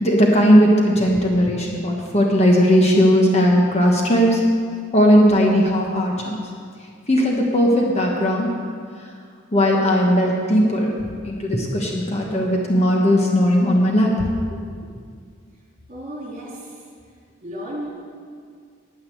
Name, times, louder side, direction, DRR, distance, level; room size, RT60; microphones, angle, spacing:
voice 1, 0.0-4.4 4.9-6.4 7.1-8.5 9.5-10.9 11.3-14.1, equal, 30° left, -1 dB, 1.3 m, -17 dB
voice 2, 15.9-16.7 17.4-17.9, equal, 35° right, -4 dB, 3.6 m, -33 dB
9.8 x 9.6 x 7.7 m, 2.1 s
head